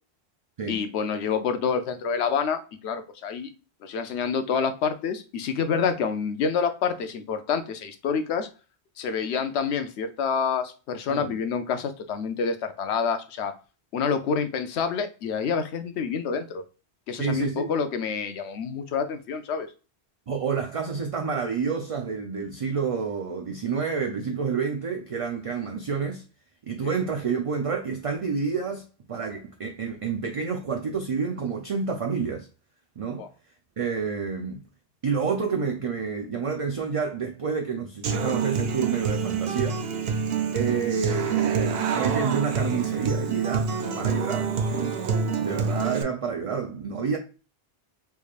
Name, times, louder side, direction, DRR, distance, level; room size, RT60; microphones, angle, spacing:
voice 1, 0.7-3.5 3.8-8.5 9.0-13.5 13.9-16.6 17.1-19.7 26.8-27.0 33.2-33.3, left 6 dB, 85° left, 0.9 m, -27 dB
voice 2, 17.2-17.7 20.3-26.2 26.7-28.8 29.1-32.5 33.0-33.3 33.8-34.6 35.0-39.8 40.5-45.0 45.4-47.2, right 5 dB, 45° right, 0.4 m, -29 dB
Human voice / Acoustic guitar, 38.0-46.0, right 6 dB, 70° right, 0.8 m, -27 dB
3.4 x 3.2 x 2.4 m
omnidirectional pair, 1.1 m